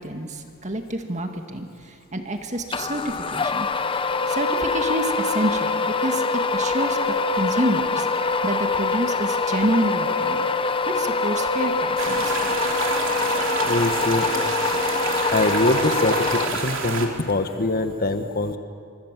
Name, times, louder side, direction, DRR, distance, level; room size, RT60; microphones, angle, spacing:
voice 1, 0.0-6.2 6.5-10.5 10.9-12.5, right 1 dB, 35° right, 5 dB, 2.0 m, -28 dB
sound 1, 2.7-17.0, left 4 dB, 25° left, 0.6 m, -24 dB
sound 2, 12.0-17.1, right 4 dB, 60° right, 3.1 m, -28 dB
voice 2, 13.6-14.3 15.3-18.6, left 2 dB, 45° left, 8 dB, 1.4 m, -23 dB
25.0 x 24.0 x 7.6 m, 2.3 s
head